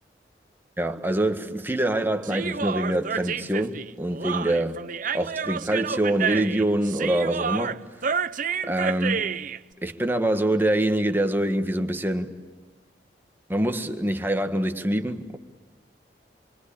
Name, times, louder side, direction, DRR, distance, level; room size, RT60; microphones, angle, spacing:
voice 1, 0.8-4.8 5.1-7.8 8.6-9.3 9.8-12.4 13.5-15.4, right 1 dB, 10° right, 1.7 m, -25 dB
Human voice, 2.2-9.6, right 6 dB, 50° right, 0.8 m, -29 dB
28.5 x 24.5 x 8.6 m
head